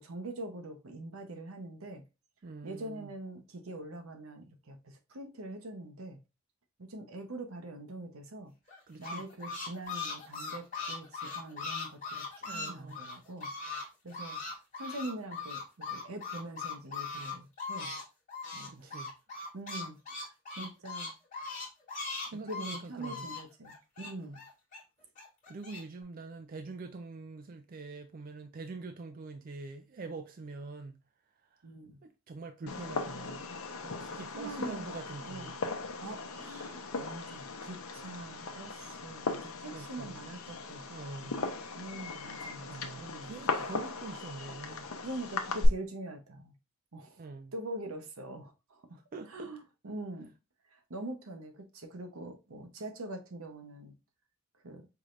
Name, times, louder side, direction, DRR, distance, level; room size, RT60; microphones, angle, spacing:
voice 1, 0.0-2.0 2.6-6.2 6.8-8.5 9.0-17.9 18.5-19.0 19.5-21.1 22.5-24.4 31.6-32.0 33.8-34.9 35.2-35.5 36.0-41.4 41.7-43.4 45.0-46.6 46.9-49.0 49.3-50.3 50.7-54.0 54.6-54.9, right 1 dB, 80° right, 0.9 m, -44 dB
voice 2, 2.4-3.1 8.9-9.3 12.5-13.0 18.6-19.1 20.6-20.7 22.3-23.3 24.2-24.4 25.5-30.9 31.4-31.6 32.0-33.5 34.0-35.6 39.7-40.2 40.9-41.5 42.7-44.9 47.2-47.5 48.9-49.5, right 3 dB, 40° right, 0.4 m, -45 dB
sound 1, 8.7-13.8 14.1-18.0 18.3-24.8 25.2-25.8, left 4 dB, 40° left, 1.7 m, -39 dB
Fireworks, 32.7-45.7, left 3 dB, 90° left, 0.7 m, -38 dB
4.8 x 3.1 x 2.5 m
head